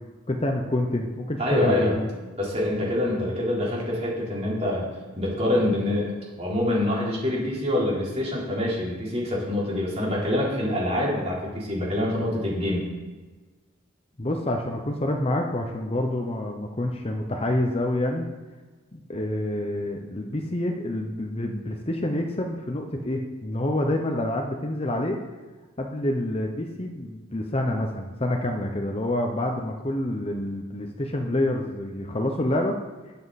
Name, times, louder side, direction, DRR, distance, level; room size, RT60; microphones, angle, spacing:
voice 1, 0.3-2.1 14.2-18.3 18.9-25.2 25.8-32.8, left 1 dB, 30° left, 3 dB, 0.9 m, -27 dB
voice 2, 1.4-2.0 2.4-4.9 5.2-12.9, left 1 dB, 30° right, -5 dB, 3.8 m, -25 dB
20.5 x 7.5 x 4.2 m, 1.3 s
head